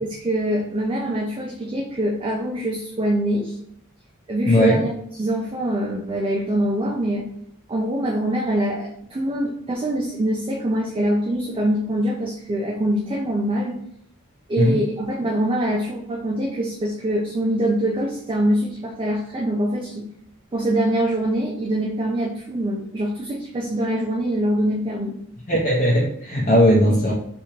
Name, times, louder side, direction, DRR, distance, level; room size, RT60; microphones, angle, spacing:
voice 1, 0.0-3.5 4.3-4.9 5.2-7.3 7.7-13.8 14.5-20.1 20.5-25.1, right 1 dB, 25° right, 0 dB, 0.4 m, -24 dB
voice 2, 4.5-4.8 14.6-14.8 25.5-27.1, equal, 40° left, -4 dB, 0.6 m, -17 dB
3.5 x 2.9 x 2.9 m, 0.70 s
head